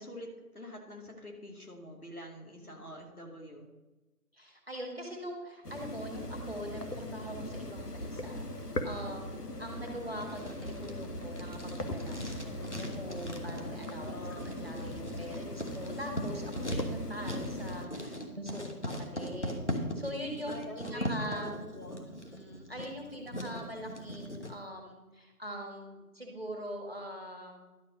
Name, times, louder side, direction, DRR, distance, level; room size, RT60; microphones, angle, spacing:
voice 1, 0.0-3.7 14.0-14.6 20.5-22.1, left 1 dB, 70° left, 1 dB, 2.6 m, -45 dB
voice 2, 2.6-3.0 4.3-9.3 9.6-21.5 22.0-27.6, equal, 40° right, 1 dB, 1.9 m, -43 dB
sound 1, 5.6-17.9, left 1 dB, 85° left, 1.4 m, -40 dB
Writing, 10.2-24.5, equal, 50° left, 1.3 m, -40 dB
11.5 x 4.9 x 6.4 m, 1.1 s
figure-of-eight pair, 175°, 46 cm